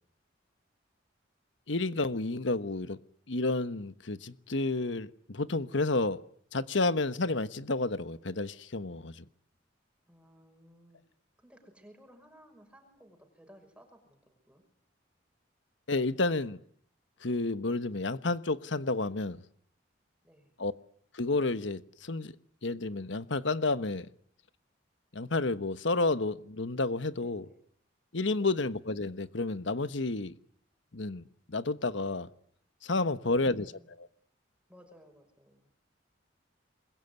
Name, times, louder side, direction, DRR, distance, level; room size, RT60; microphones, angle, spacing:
voice 1, 1.7-3.0 3.3-6.2 6.5-9.2 15.9-16.6 17.2-19.4 20.6-20.7 21.1-22.3 22.6-24.1 25.1-27.4 28.1-30.3 30.9-32.3 32.8-33.7 34.0-34.1, left 2 dB, 70° left, 1.2 m, -30 dB
voice 2, 10.1-11.0 11.4-14.6 20.2-20.6 27.2-27.6 28.4-28.6 33.1-33.9 34.7-35.7, equal, 5° right, 5.8 m, -58 dB
28.0 x 22.0 x 9.6 m
head